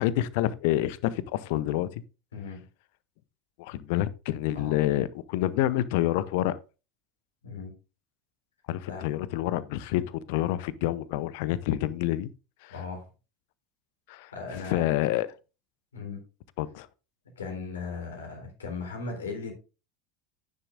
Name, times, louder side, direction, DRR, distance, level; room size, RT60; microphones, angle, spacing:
voice 1, 0.0-1.9 3.6-6.6 8.7-12.3 12.6-12.7 14.1-14.3 14.7-15.3 16.6-16.9, left 14 dB, 60° left, 0.7 m, -28 dB
voice 2, 2.3-2.7 4.5-4.8 7.4-7.7 8.9-9.2 12.7-13.1 14.3-14.8 15.9-16.2 17.4-19.5, left 4 dB, 75° left, 3.8 m, -37 dB
10.5 x 9.9 x 2.6 m
figure-of-eight pair, 75°, 0 cm